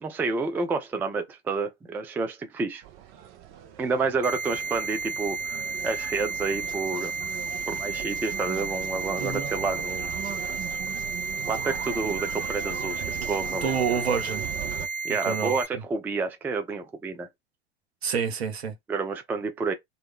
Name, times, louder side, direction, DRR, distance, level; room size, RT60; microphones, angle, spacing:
voice 1, 0.0-2.8 3.8-7.1 7.7-10.1 11.5-13.7 15.0-17.3 18.9-19.7, right 4 dB, 5° right, 0.3 m, -29 dB
sound 1, 2.8-14.9, right 11 dB, 40° right, 0.6 m, -39 dB
sound 2, 4.2-15.6, right 4 dB, 60° right, 1.3 m, -32 dB
voice 2, 13.5-14.5 15.2-15.5 18.0-18.7, right 6 dB, 75° right, 0.9 m, -28 dB
2.3 x 2.0 x 3.5 m
figure-of-eight pair, 80°, 32 cm